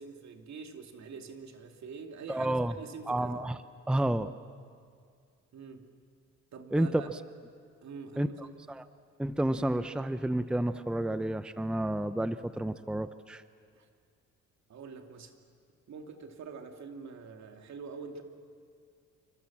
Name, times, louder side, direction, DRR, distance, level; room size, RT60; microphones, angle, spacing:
voice 1, 0.0-3.4 5.5-5.8 6.5-7.1 7.8-8.5 13.7-13.9 14.7-15.3 15.9-18.2, right 5 dB, 65° right, 4 dB, 2.7 m, -45 dB
voice 2, 2.3-2.7 3.1-3.6 3.9-4.3 6.7-7.0 8.2-8.9 9.2-13.4, right 1 dB, 5° right, 12 dB, 0.7 m, -30 dB
28.0 x 25.5 x 7.3 m, 2.2 s
cardioid pair, 90°, 30 cm